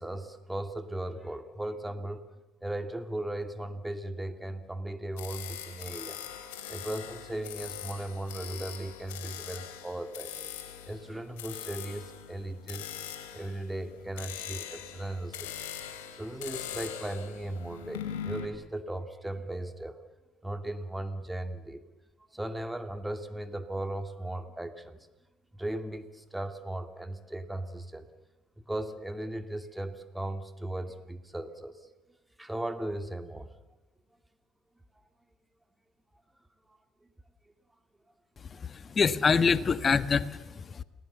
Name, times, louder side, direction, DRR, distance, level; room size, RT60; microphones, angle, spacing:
voice 1, 0.0-2.2 2.6-6.2 6.7-10.3 10.8-12.9 13.3-15.7 16.1-20.0 20.4-21.8 22.3-25.1 25.5-28.1 28.6-31.9 32.4-33.5 38.5-38.6, right 1 dB, 10° right, 8 dB, 2.7 m, -37 dB
sound 1, 5.2-18.4, left 9 dB, 80° left, 3.3 m, -42 dB
voice 2, 38.4-40.8, left 5 dB, 40° left, 14 dB, 1.5 m, -26 dB
29.5 x 20.0 x 6.9 m, 1.1 s
hypercardioid pair, 60°, 0 cm